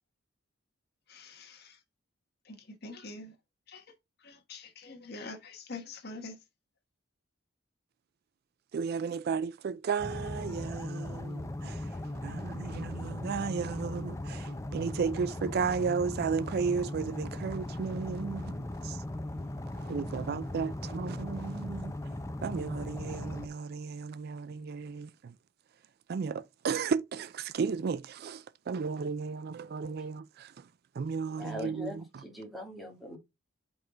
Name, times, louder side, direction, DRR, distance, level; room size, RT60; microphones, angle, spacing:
voice 1, 1.1-1.8 2.5-3.3 3.7-3.8 4.2-6.4, left 3 dB, 55° left, 1.3 m, -45 dB
voice 2, 8.7-19.0 19.7-21.9 22.4-25.3 26.1-30.7 30.9-32.0, right 5 dB, 55° right, 0.3 m, -34 dB
sound 1, 10.0-23.5, left 1 dB, 15° left, 0.6 m, -38 dB
voice 3, 31.4-33.2, left 1 dB, ahead, 1.9 m, -41 dB
5.4 x 4.5 x 3.8 m
head